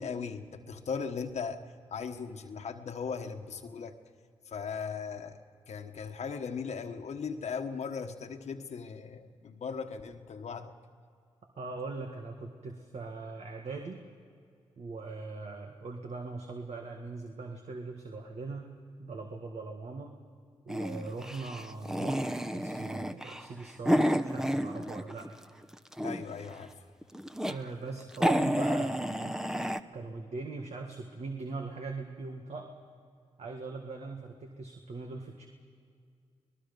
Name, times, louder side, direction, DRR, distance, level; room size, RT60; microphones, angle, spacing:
voice 1, 0.0-4.0 4.5-5.4 5.7-10.7 26.0-26.7, left 5 dB, 70° left, 5 dB, 1.3 m, -38 dB
voice 2, 11.6-14.0 14.8-20.2 20.7-25.3 27.5-29.4 29.9-32.7 33.4-35.5, right 3 dB, 65° right, 2 dB, 1.8 m, -41 dB
sound 1, 20.7-25.3 25.6-26.4 27.0-27.6 27.9-28.0 28.1-29.8, equal, 5° right, 0.9 m, -30 dB
25.0 x 19.5 x 5.4 m, 2.3 s
cardioid pair, 55°, 12 cm